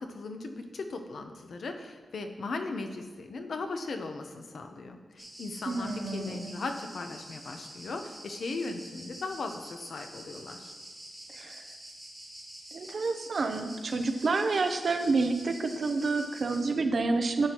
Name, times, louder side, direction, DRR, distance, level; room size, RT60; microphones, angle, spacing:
voice 1, 0.0-10.7, left 3 dB, 60° left, 6 dB, 0.8 m, -38 dB
sound 1, 5.2-16.7, right 1 dB, 5° left, 3.3 m, -47 dB
voice 2, 5.7-6.5 11.3-11.6 12.7-17.5, right 3 dB, 45° right, 6 dB, 0.7 m, -29 dB
12.0 x 8.6 x 3.0 m, 1.4 s
wide cardioid pair, 175°, 0 cm